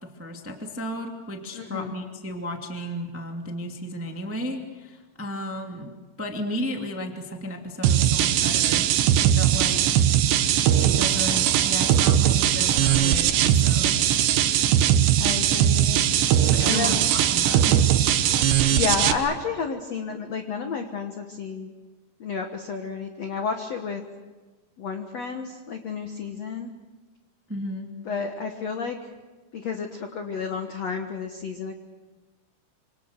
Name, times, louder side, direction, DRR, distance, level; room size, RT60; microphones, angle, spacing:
voice 1, 0.0-5.9 6.2-10.1 10.8-14.2 16.5-17.9 27.5-27.9, left 1 dB, 10° right, 2 dB, 0.6 m, -34 dB
voice 2, 1.5-2.0 15.1-16.0 16.6-17.1 18.7-21.7 22.2-24.0 24.8-26.7 28.0-29.0 29.5-31.8, left 5 dB, 90° left, 5 dB, 1.4 m, -31 dB
sound 1, 7.8-19.1, right 10 dB, 75° right, 3.3 m, -20 dB
27.0 x 26.5 x 6.7 m, 1.3 s
omnidirectional pair, 5.3 m